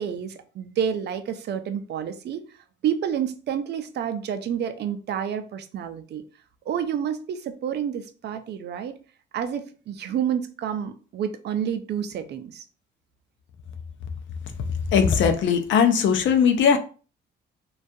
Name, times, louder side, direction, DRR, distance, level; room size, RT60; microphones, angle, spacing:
voice 1, 0.0-2.4 2.8-6.2 6.7-8.9 9.3-12.6, right 8 dB, 60° right, 0.4 m, -29 dB
voice 2, 14.9-16.8, left 7 dB, 70° left, 0.5 m, -19 dB
2.3 x 2.3 x 2.6 m
cardioid pair, 90°, 20 cm